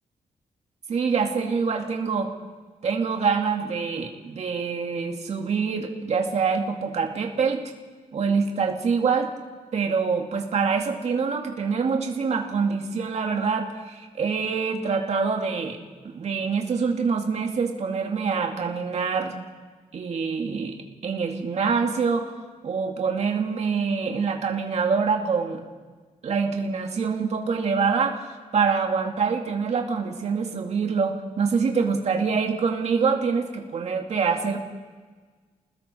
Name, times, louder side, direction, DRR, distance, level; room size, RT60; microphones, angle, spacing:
voice 1, 0.9-2.3 2.8-7.6 8.1-9.3 9.7-15.8 16.1-19.4 19.9-20.8 21.0-22.3 22.6-25.6 26.2-34.6, right 5 dB, 50° right, 2 dB, 2.3 m, -25 dB
29.5 x 20.0 x 4.5 m, 1.4 s
wide cardioid pair, 175°, 14 cm